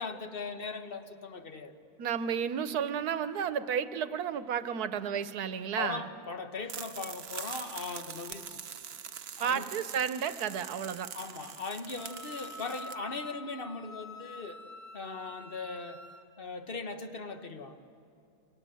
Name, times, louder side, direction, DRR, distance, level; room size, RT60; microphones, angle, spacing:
voice 1, 0.0-1.8 5.8-8.6 9.4-9.7 11.1-14.6 14.9-16.0 16.4-17.8, left 4 dB, 40° left, 7 dB, 1.5 m, -39 dB
voice 2, 2.0-6.1 9.4-11.1, right 8 dB, 85° right, 12 dB, 1.4 m, -32 dB
sound 1, 6.7-13.0, right 8 dB, 50° right, 0.8 m, -44 dB
Wind instrument woodwind instrument, 12.0-16.2, left 2 dB, 30° right, 2.1 m, -46 dB
28.5 x 26.0 x 7.8 m, 2.6 s
omnidirectional pair, 1.6 m